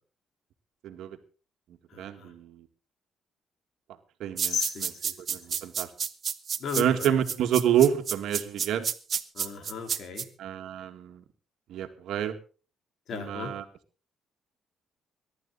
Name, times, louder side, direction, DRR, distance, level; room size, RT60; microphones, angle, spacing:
voice 1, 0.8-1.2 2.0-2.6 4.2-4.9 5.3-5.9 6.8-8.9 10.4-11.2 11.7-12.4 13.1-13.6, right 10 dB, 75° right, 7 dB, 2.0 m, -28 dB
voice 2, 1.9-2.3 4.4-5.6 6.6-7.1 9.3-10.2 13.1-13.5, left 6 dB, 65° left, 6 dB, 4.2 m, -36 dB
sound 1, 4.4-10.2, right 7 dB, 50° right, 1.2 m, -30 dB
22.5 x 11.5 x 4.1 m, 0.37 s
cardioid pair, 90°, 0 cm